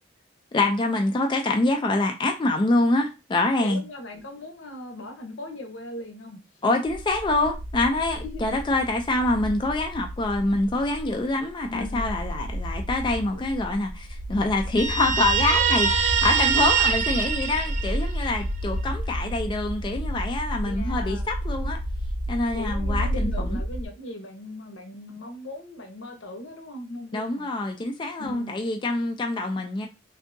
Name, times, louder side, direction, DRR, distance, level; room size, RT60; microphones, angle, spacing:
voice 1, 0.5-3.8 6.6-21.8 22.3-23.6 27.1-29.9, left 2 dB, 25° left, 0.3 m, -25 dB
voice 2, 3.6-6.4 8.2-8.6 11.7-12.1 13.3-13.4 15.1-15.5 20.6-21.3 22.5-27.5 28.2-28.6, left 2 dB, 85° left, 0.9 m, -38 dB
sound 1, 6.9-23.8, equal, 80° right, 0.6 m, -31 dB
Guitar, 14.8-18.3, right 7 dB, 40° right, 0.4 m, -23 dB
3.4 x 2.7 x 2.6 m
head